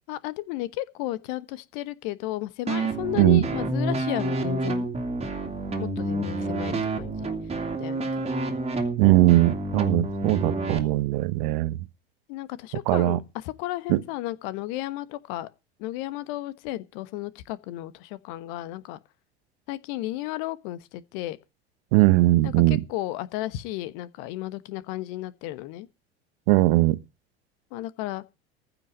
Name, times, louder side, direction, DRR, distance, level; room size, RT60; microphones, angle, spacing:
voice 1, 0.1-4.9 5.8-7.3 7.8-8.4 12.3-15.5 15.8-19.0 19.7-21.4 22.4-25.9 27.7-28.2, left 16 dB, 55° left, 1.2 m, -33 dB
sound 1, 2.7-10.8, right 2 dB, 20° right, 2.5 m, -29 dB
voice 2, 9.0-11.8 12.9-13.2 13.9-14.0 21.9-22.8 26.5-27.0, right 18 dB, 55° right, 1.1 m, -20 dB
15.0 x 6.1 x 8.9 m
figure-of-eight pair, 75°, 32 cm